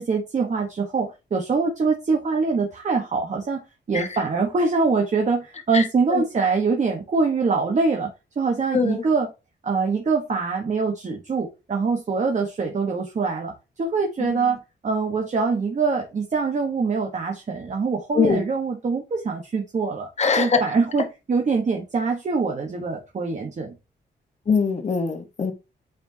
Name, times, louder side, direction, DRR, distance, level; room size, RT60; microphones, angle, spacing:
voice 1, 0.0-3.6 3.9-9.3 9.6-20.1 20.4-23.7, right 4 dB, 40° right, 1.2 m, -24 dB
voice 2, 8.7-9.0 14.2-14.4 18.1-18.4 20.2-20.6 24.5-25.5, left 5 dB, 35° left, 1.3 m, -22 dB
8.8 x 4.7 x 2.8 m
wide cardioid pair, 145°, 19 cm